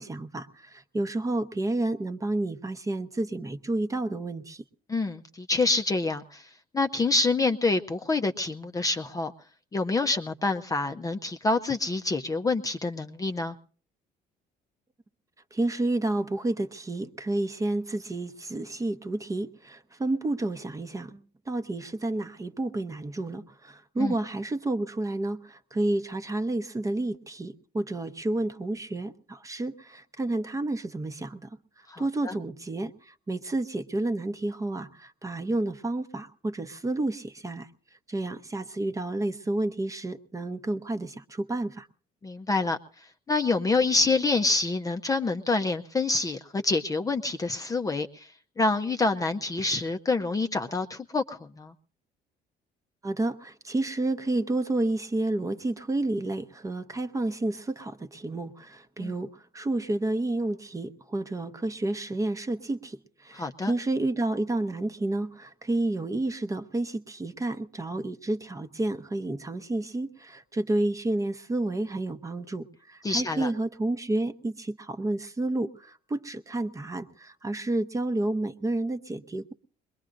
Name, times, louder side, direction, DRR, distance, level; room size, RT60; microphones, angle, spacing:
voice 1, 0.0-4.6 15.5-31.6 32.0-37.7 38.1-41.9 53.0-79.5, right 2 dB, 20° right, 10 dB, 0.8 m, -30 dB
voice 2, 4.9-6.5 6.7-9.3 9.7-13.6 24.0-24.1 31.9-32.3 42.2-42.8 43.3-48.3 48.6-51.7 59.0-59.1 63.3-63.7 73.0-73.5, left 3 dB, 20° left, 7 dB, 0.6 m, -27 dB
22.5 x 21.5 x 2.6 m, 0.43 s
cardioid pair, 110°, 17 cm